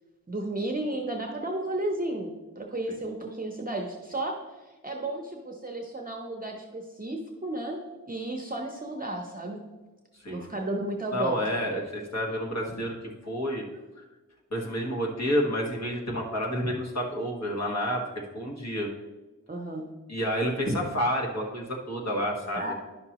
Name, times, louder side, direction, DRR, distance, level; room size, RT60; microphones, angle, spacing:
voice 1, 0.3-4.3 4.6-9.6 10.3-11.4 19.5-19.9 22.6-22.7, right 2 dB, 25° right, 1 dB, 0.7 m, -33 dB
voice 2, 11.1-12.9 13.2-13.6 14.0-14.1 14.5-18.9 20.1-22.7, equal, 50° left, -1 dB, 1.5 m, -29 dB
10.5 x 5.8 x 3.0 m, 1.2 s
wide cardioid pair, 80°, 34 cm